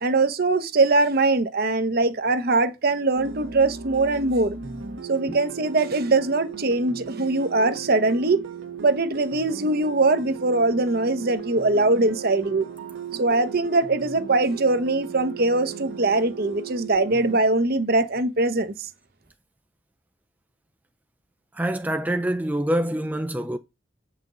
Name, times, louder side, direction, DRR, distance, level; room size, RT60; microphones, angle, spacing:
voice 1, 0.0-4.6 5.1-8.5 8.8-12.7 13.2-18.7, right 2 dB, 50° right, 0.9 m, -22 dB
sound 1, 3.1-17.4, right 6 dB, 85° right, 1.3 m, -37 dB
voice 2, 21.5-23.6, right 1 dB, 10° right, 0.4 m, -25 dB
8.1 x 5.8 x 3.8 m
head